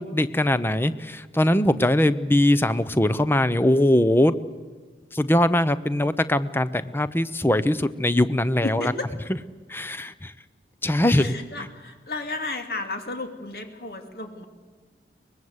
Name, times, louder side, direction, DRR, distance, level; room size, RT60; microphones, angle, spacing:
voice 1, 0.0-4.3 5.1-8.9 9.7-10.3 10.8-11.3, left 1 dB, 15° left, 14 dB, 0.7 m, -21 dB
voice 2, 8.6-9.1 11.1-14.5, left 2 dB, 60° left, 5 dB, 2.7 m, -33 dB
24.0 x 20.5 x 8.1 m, 1.4 s
head